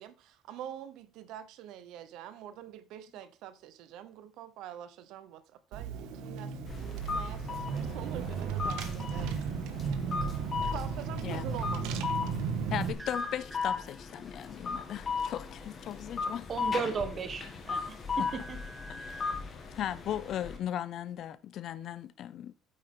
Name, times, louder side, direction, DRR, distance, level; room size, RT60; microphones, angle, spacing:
voice 1, 0.0-9.4 10.7-12.0, right 11 dB, 65° right, 0.9 m, -45 dB
Car / Engine, 5.7-12.9, right 6 dB, 85° right, 1.4 m, -35 dB
sound 1, 6.7-20.6, left 5 dB, 25° left, 1.8 m, -37 dB
voice 2, 12.7-16.5 17.8-17.9 18.2-18.3 18.9-19.4 19.8-22.5, left 11 dB, 45° left, 0.5 m, -37 dB
sound 2, 13.0-14.5 16.4-17.2 17.6-19.4, equal, 5° right, 0.9 m, -47 dB
voice 3, 16.5-18.6, right 5 dB, 25° right, 1.3 m, -35 dB
9.0 x 8.0 x 3.8 m
cardioid pair, 175°, 0 cm